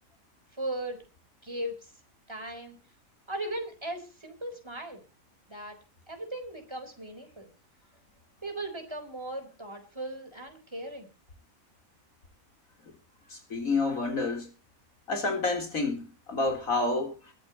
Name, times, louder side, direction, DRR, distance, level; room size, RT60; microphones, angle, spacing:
voice 1, 0.5-1.0 1.4-1.9 2.3-2.8 3.3-5.0 5.5-5.8 6.1-7.5 8.4-11.1, right 1 dB, 20° right, 4.1 m, -37 dB
voice 2, 13.3-14.5 15.1-17.3, left 3 dB, 85° left, 4.0 m, -29 dB
22.5 x 12.0 x 2.9 m
omnidirectional pair, 1.4 m